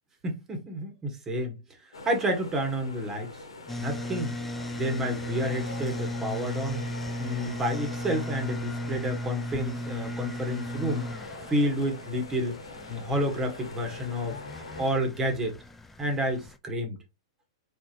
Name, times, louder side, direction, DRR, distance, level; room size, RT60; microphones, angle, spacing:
voice 1, 0.2-1.6 2.0-3.4 3.8-4.3 4.7-6.8 7.2-11.1 11.5-12.6 12.9-14.4 14.8-15.6 16.0-17.0, equal, 15° right, 1.6 m, -30 dB
sound 1, 1.9-14.9, left 3 dB, 90° left, 1.5 m, -43 dB
sound 2, 3.7-16.6, left 1 dB, 10° left, 0.6 m, -36 dB
4.3 x 4.1 x 3.0 m
hypercardioid pair, 125°, 3 cm